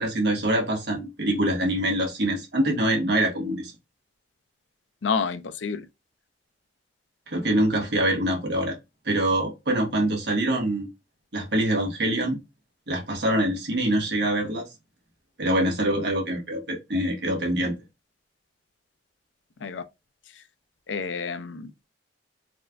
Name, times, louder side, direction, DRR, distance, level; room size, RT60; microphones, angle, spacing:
voice 1, 0.0-3.7 7.3-8.8 9.1-10.9 11.3-12.4 12.9-14.6 15.4-17.7, right 1 dB, 65° right, 1.6 m, -24 dB
voice 2, 5.0-5.9 19.6-19.8 20.4-20.5 20.9-21.9, left 5 dB, 90° left, 0.5 m, -29 dB
4.2 x 3.3 x 2.5 m
head